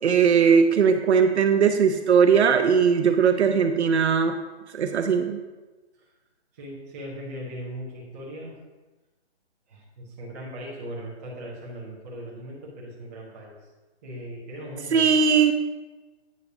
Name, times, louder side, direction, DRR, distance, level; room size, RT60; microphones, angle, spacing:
voice 1, 0.0-4.4 4.7-5.4 14.9-15.5, right 6 dB, 80° right, 7 dB, 0.6 m, -19 dB
voice 2, 6.5-8.6 9.7-13.7 14.0-15.1, equal, 15° right, -5 dB, 0.7 m, -38 dB
8.3 x 5.8 x 2.7 m, 1.2 s
hypercardioid pair, 165°, 33 cm